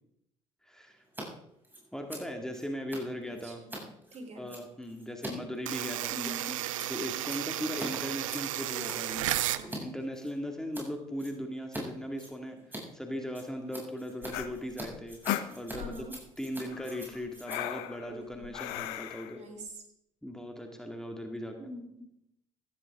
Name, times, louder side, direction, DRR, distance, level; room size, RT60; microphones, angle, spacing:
voice 1, 0.6-1.0 1.9-3.6 4.4-6.3 6.9-9.2 9.6-12.6 12.9-15.2 15.6-15.9 16.4-19.4 20.2-21.6, equal, 5° left, 3 dB, 2.2 m, -38 dB
Scissors, 1.0-1.2 1.5-9.8 10.1-10.9 11.2-11.8 12.1-18.9, right 1 dB, 10° right, 7.2 m, -45 dB
voice 2, 3.4-4.4 6.1-6.6 9.3-9.7 15.8-16.2 18.1-18.5 19.3-19.8 21.6-22.1, right 1 dB, 40° right, 4 dB, 3.5 m, -44 dB
sound 1, 5.7-9.7, right 14 dB, 85° right, 0.5 m, -33 dB
sound 2, 14.2-16.1 16.7-19.4, left 13 dB, 75° left, 0.9 m, -37 dB
14.5 x 14.5 x 3.7 m, 0.77 s
hypercardioid pair, 55°, 17 cm